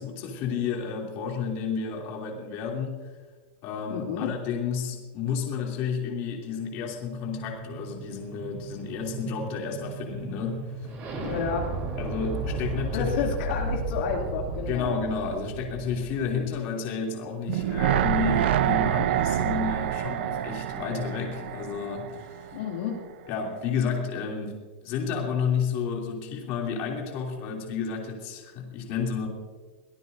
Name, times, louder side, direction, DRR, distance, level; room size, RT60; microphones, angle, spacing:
voice 1, 0.0-3.1 3.6-11.0 12.0-13.1 14.7-22.4 23.3-24.6 24.8-29.3, left 6 dB, 35° left, 0 dB, 3.0 m, -31 dB
voice 2, 3.9-4.3 11.2-11.7 12.5-12.6 12.9-14.9 22.5-23.0, left 6 dB, 60° left, -1 dB, 2.6 m, -30 dB
sound 1, 6.3-16.5, right 2 dB, 25° right, 3.6 m, -35 dB
sound 2, 17.5-22.6 22.9-23.0, right 11 dB, 60° right, 0.8 m, -26 dB
23.0 x 18.0 x 2.7 m, 1.4 s
supercardioid pair, 170°, 7 cm